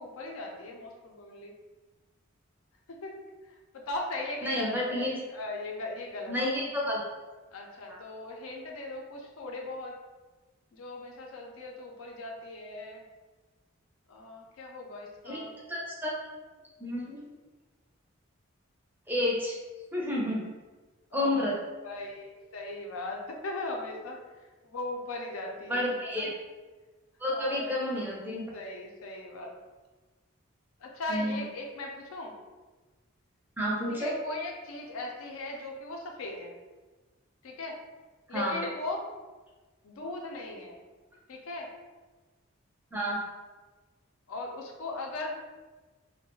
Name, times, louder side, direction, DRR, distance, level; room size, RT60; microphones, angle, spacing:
voice 1, 0.0-1.5 2.9-3.2 3.5-6.5 7.5-9.9 10.7-13.0 14.1-15.5 21.1-21.3 21.8-26.3 27.3-28.1 28.5-29.5 30.8-32.3 34.0-36.6 37.4-37.8 38.3-39.0 39.8-40.8 41.3-41.7 44.3-45.4, left 2 dB, 80° left, 1 dB, 0.4 m, -38 dB
voice 2, 4.4-5.2 6.3-7.0 7.9-8.0 15.3-15.4 15.7-16.1 16.8-17.3 19.1-19.5 19.9-20.5 21.1-21.6 25.7-26.3 27.2-28.4 31.1-31.4 33.6-34.2 38.3-38.6 42.9-43.2, left 1 dB, 10° right, -4 dB, 0.4 m, -30 dB
2.3 x 2.1 x 2.9 m, 1.3 s
head